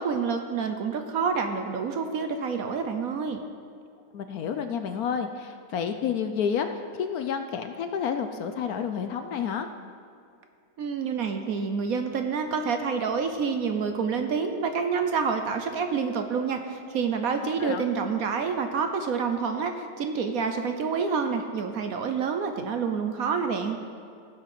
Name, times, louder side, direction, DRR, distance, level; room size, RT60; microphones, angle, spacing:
voice 1, 0.0-3.4 10.8-23.8, right 5 dB, 60° right, 6 dB, 1.1 m, -28 dB
voice 2, 4.1-9.7 17.6-17.8, left 7 dB, 65° left, 7 dB, 1.0 m, -30 dB
15.0 x 7.3 x 6.0 m, 2.4 s
omnidirectional pair, 1.9 m